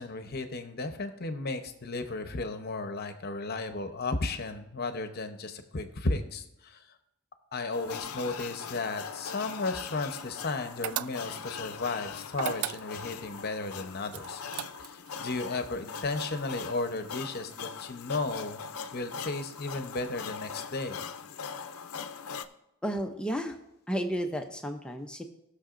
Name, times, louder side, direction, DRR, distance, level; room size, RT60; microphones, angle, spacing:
voice 1, 0.0-6.8 7.5-14.4 14.8-18.6 18.9-21.0, left 3 dB, 45° left, 7 dB, 0.9 m, -34 dB
sound 1, 7.7-22.5, left 6 dB, 90° left, 0.5 m, -41 dB
sound 2, 10.8-11.5 12.3-13.2 14.1-15.1, right 11 dB, 85° right, 0.3 m, -35 dB
voice 2, 22.8-23.6 23.9-25.2, equal, 5° left, 3 dB, 0.6 m, -32 dB
19.5 x 6.5 x 2.5 m, 0.85 s
head